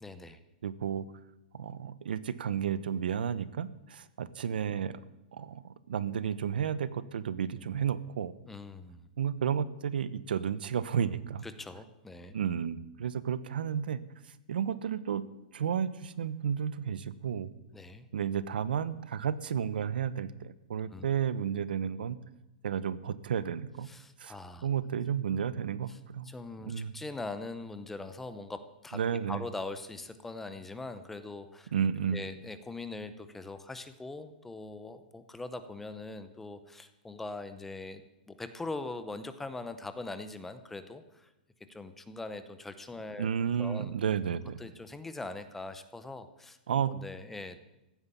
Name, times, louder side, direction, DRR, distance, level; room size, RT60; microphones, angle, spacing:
voice 1, 0.0-0.4 8.5-9.1 11.4-12.3 17.7-18.1 20.9-21.1 23.9-24.7 25.9-26.0 26.2-29.0 29.3-31.7 32.1-38.0 38.3-41.3 41.7-43.3 43.6-43.9 44.6-46.6 46.8-47.6, left 2 dB, 5° left, 10 dB, 0.7 m, -42 dB
voice 2, 0.6-1.1 1.5-5.0 5.3-8.3 9.2-11.5 12.3-14.0 14.5-15.3 15.5-17.5 18.1-22.2 22.6-23.9 24.2-24.3 24.6-26.3 26.7-26.9 28.9-29.4 31.7-32.2 43.2-44.6 46.7-46.9, right 8 dB, 80° right, 15 dB, 1.0 m, -32 dB
15.5 x 9.6 x 8.4 m, 0.93 s
hypercardioid pair, 170°, 5 cm